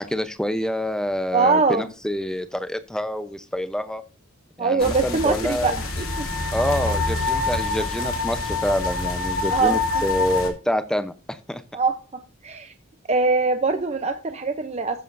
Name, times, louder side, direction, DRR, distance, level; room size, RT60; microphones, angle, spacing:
voice 1, 0.0-4.0 4.6-5.8 6.5-11.6, left 1 dB, 5° left, 11 dB, 0.8 m, -27 dB
voice 2, 1.3-1.8 4.6-5.7 9.5-9.8 11.7-12.0 12.4-12.7 13.1-15.0, right 4 dB, 30° right, 7 dB, 0.7 m, -22 dB
sound 1, 4.8-10.5, left 3 dB, 85° left, 2.7 m, -26 dB
14.5 x 7.4 x 2.7 m, 0.34 s
head